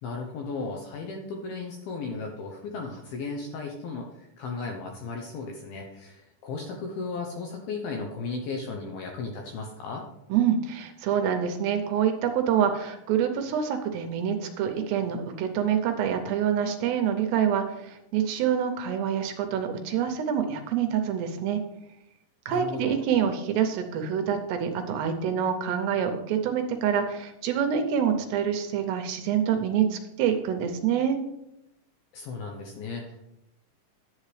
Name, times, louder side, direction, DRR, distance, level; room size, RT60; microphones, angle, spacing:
voice 1, 0.0-10.1 22.5-23.0 32.1-33.2, left 4 dB, 75° left, 2 dB, 2.2 m, -35 dB
voice 2, 10.3-21.6 22.5-31.2, right 8 dB, 80° right, 6 dB, 2.7 m, -26 dB
11.0 x 8.6 x 3.2 m, 0.86 s
omnidirectional pair, 5.2 m